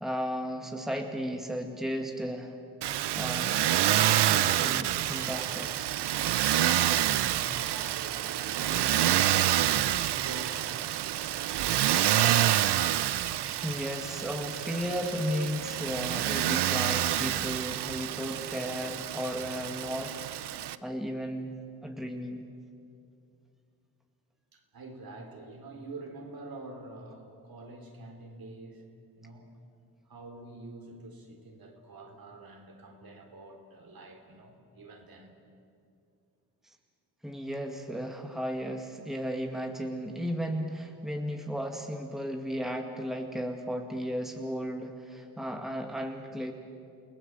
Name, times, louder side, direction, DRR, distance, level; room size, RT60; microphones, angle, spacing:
voice 1, 0.0-2.5 3.2-3.6 4.1-5.9 12.8-20.1 20.8-22.5 37.2-46.5, equal, ahead, 3 dB, 2.1 m, -35 dB
Motor vehicle (road), 2.8-20.8, right 12 dB, 75° right, 0.8 m, -28 dB
voice 2, 6.9-9.3 9.9-11.3 24.5-28.8 29.2-29.5 30.1-35.4, right 2 dB, 55° right, 3 dB, 4.2 m, -46 dB
29.0 x 18.0 x 7.7 m, 2.4 s
cardioid pair, 80°, 41 cm